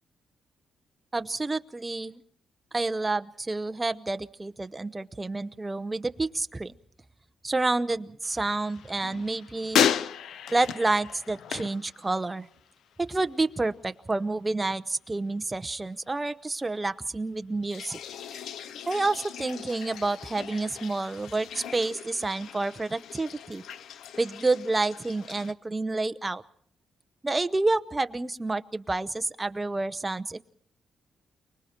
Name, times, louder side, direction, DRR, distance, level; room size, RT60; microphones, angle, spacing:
voice 1, 1.1-2.2 2.7-6.7 7.4-9.8 10.5-12.5 13.0-18.0 18.9-23.6 24.2-26.4 27.2-30.4, right 2 dB, 15° right, 12 dB, 0.8 m, -29 dB
use the restroom, 8.2-12.7 12.9-13.5 17.6-25.5, left 9 dB, 80° left, 0.8 m, -34 dB
29.5 x 20.0 x 4.4 m, 0.63 s
cardioid pair, 120°, 0 cm